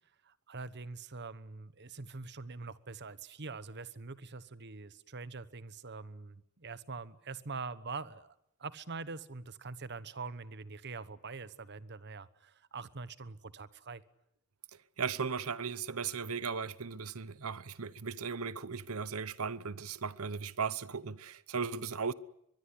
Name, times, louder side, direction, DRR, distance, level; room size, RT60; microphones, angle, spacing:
voice 1, 0.2-8.3 8.6-14.0, right 4 dB, 50° right, 1.2 m, -44 dB
voice 2, 15.0-22.1, right 5 dB, 75° right, 1.0 m, -37 dB
24.0 x 22.0 x 9.9 m
head